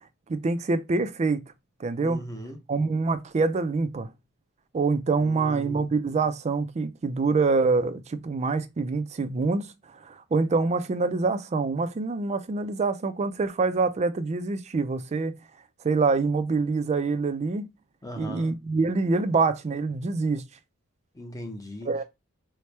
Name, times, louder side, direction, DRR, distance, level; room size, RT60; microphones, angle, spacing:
voice 1, 0.3-1.4 1.8-2.2 2.7-4.1 4.7-9.7 10.0-15.3 15.8-17.7 18.2-20.5 21.8-22.0, right 4 dB, 30° right, 0.4 m, -25 dB
voice 2, 2.0-2.6 5.2-5.9 18.0-18.5 21.1-21.9, equal, 15° left, 0.6 m, -38 dB
4.3 x 2.1 x 3.2 m
head